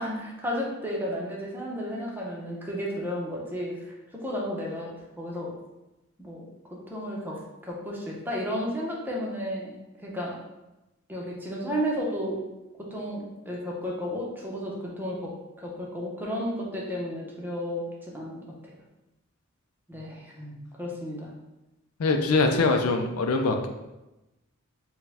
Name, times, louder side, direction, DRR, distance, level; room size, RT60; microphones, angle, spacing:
voice 1, 0.0-3.8 4.1-4.9 5.2-5.5 6.2-10.4 11.1-12.4 12.8-15.3 15.6-18.4 19.9-21.3, equal, 10° right, -3 dB, 0.7 m, -33 dB
voice 2, 22.0-23.7, left 3 dB, 85° left, 4 dB, 0.4 m, -23 dB
4.6 x 2.2 x 3.4 m, 0.99 s
head